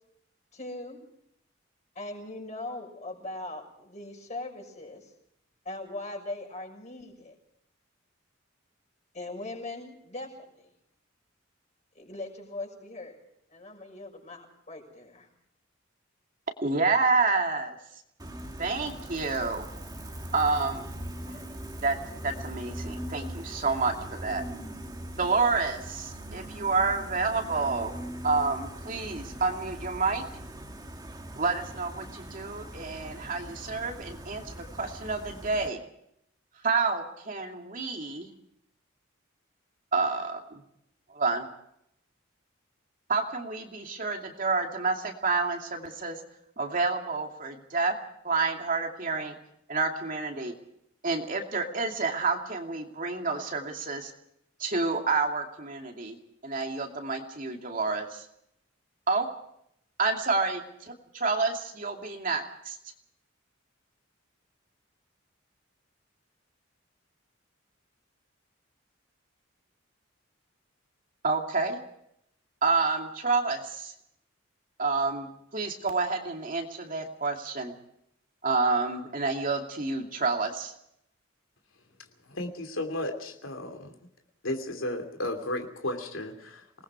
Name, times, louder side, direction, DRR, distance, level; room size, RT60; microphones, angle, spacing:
voice 1, 0.5-1.0 1.9-5.1 5.6-7.3 9.1-10.7 11.9-13.2 13.5-15.3, left 2 dB, 35° left, 2 dB, 6.4 m, -40 dB
voice 2, 16.6-17.8 18.6-19.6 20.3-20.9 21.2-21.3 21.8-22.0 22.2-24.4 25.2-30.2 31.4-35.8 36.6-38.3 39.9-40.6 41.1-41.5 43.1-46.2 46.6-48.0 48.2-49.4 49.7-50.5 51.0-54.1 54.6-56.2 56.4-58.3 59.1-59.3 60.0-62.8 71.2-71.8 72.6-73.9 74.8-77.7 78.4-80.7, right 4 dB, 45° right, 3 dB, 2.5 m, -29 dB
Gull seagull, 18.2-35.7, right 1 dB, 20° right, 2.1 m, -41 dB
voice 3, 82.3-83.9 84.4-86.8, left 1 dB, 85° left, 4 dB, 2.8 m, -34 dB
27.5 x 19.5 x 4.8 m, 0.75 s
head